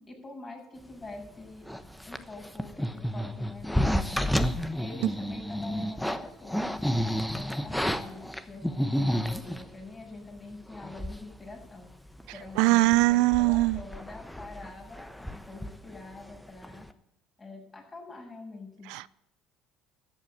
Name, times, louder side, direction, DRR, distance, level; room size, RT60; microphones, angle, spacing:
voice 1, 0.1-1.7 2.0-4.0 4.8-11.9 12.3-16.9 17.4-19.0, left 3 dB, 25° left, 7.4 m, -45 dB
sound 1, 1.7-9.7 10.4-10.5 10.7-11.3 11.6-11.7 12.2-12.5 12.9-16.4 16.6-16.9, equal, 5° left, 1.0 m, -31 dB
voice 2, 12.6-13.8 18.9-19.1, right 21 dB, 80° right, 0.4 m, -22 dB
13.5 x 8.6 x 9.1 m
supercardioid pair, 95°, 0 cm